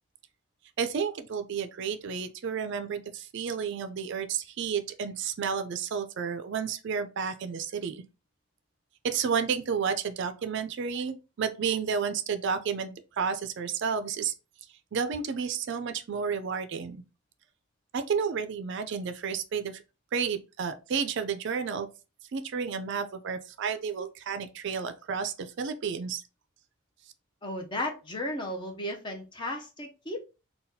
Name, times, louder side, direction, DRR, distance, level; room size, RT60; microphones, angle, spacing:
voice 1, 0.8-8.0 9.0-14.3 14.9-17.0 17.9-19.8 20.1-21.9 22.3-26.2, right 6 dB, 55° right, 0.4 m, -31 dB
voice 2, 27.4-30.3, left 1 dB, 20° left, 0.5 m, -34 dB
3.9 x 2.3 x 2.7 m
head